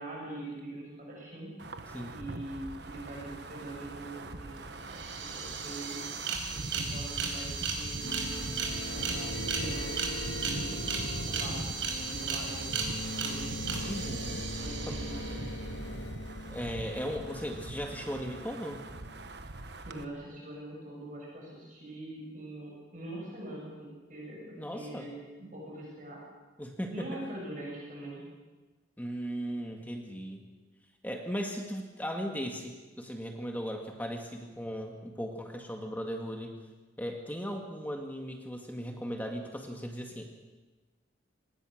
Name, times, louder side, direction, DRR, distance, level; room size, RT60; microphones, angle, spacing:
voice 1, 0.0-1.5 2.1-6.0 6.5-8.4 8.8-14.0 14.5-15.5 19.9-25.1 25.4-26.2 26.9-28.2, right 1 dB, 40° right, -3 dB, 6.9 m, -43 dB
Wind, 1.6-20.1, right 2 dB, 60° right, 1.3 m, -42 dB
sound 1, 4.6-4.7 4.8-15.7, right 5 dB, 80° right, 4.8 m, -36 dB
sound 2, 8.0-19.6, left 1 dB, 70° left, 1.5 m, -42 dB
voice 2, 13.9-14.5 14.9-15.0 16.5-18.8 24.5-25.1 26.6-27.2 29.0-30.5 31.0-36.6 37.0-40.4, equal, 10° left, 2 dB, 1.9 m, -37 dB
26.5 x 19.5 x 6.5 m, 1.2 s
head